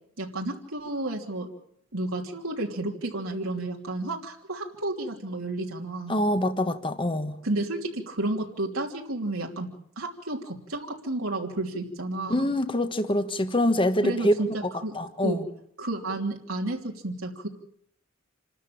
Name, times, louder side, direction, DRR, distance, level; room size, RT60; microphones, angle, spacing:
voice 1, 0.2-1.5 1.9-6.2 7.4-9.7 10.0-12.5 14.0-14.9 15.2-15.4 15.8-17.5, right 2 dB, 85° right, 3.1 m, -31 dB
voice 2, 6.1-7.4 12.3-14.3 14.9-15.4, left 1 dB, 25° left, 1.4 m, -25 dB
28.0 x 13.0 x 8.8 m
head